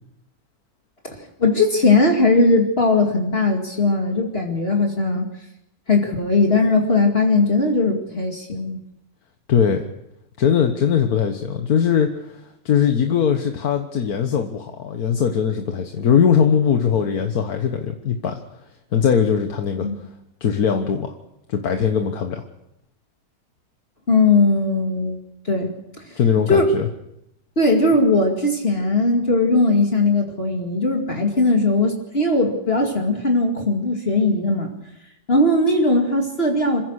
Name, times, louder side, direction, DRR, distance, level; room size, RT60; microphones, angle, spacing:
voice 1, 1.0-5.3 5.9-8.8 19.8-20.0 24.1-25.2 25.4-25.7 26.1-26.2 26.5-26.7 27.6-34.7 35.3-36.8, left 2 dB, 40° left, 1 dB, 2.5 m, -19 dB
voice 2, 9.5-9.8 10.4-12.4 12.7-18.4 18.9-19.9 20.4-21.1 21.5-22.4 26.2-26.9, left 7 dB, 90° left, 5 dB, 1.8 m, -20 dB
27.0 x 15.5 x 6.4 m, 0.84 s
omnidirectional pair, 1.5 m